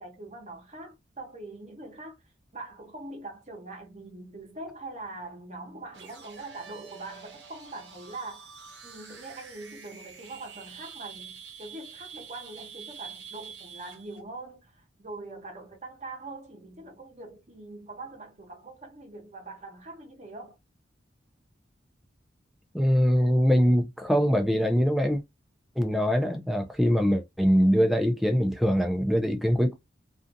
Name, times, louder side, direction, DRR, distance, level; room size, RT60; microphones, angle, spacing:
voice 1, 0.0-20.6, right 2 dB, 35° right, 0.8 m, -43 dB
sound 1, 5.9-14.2, right 6 dB, 65° right, 0.8 m, -46 dB
voice 2, 22.7-25.2 25.8-29.7, equal, ahead, 0.4 m, -23 dB
2.4 x 2.4 x 2.6 m
head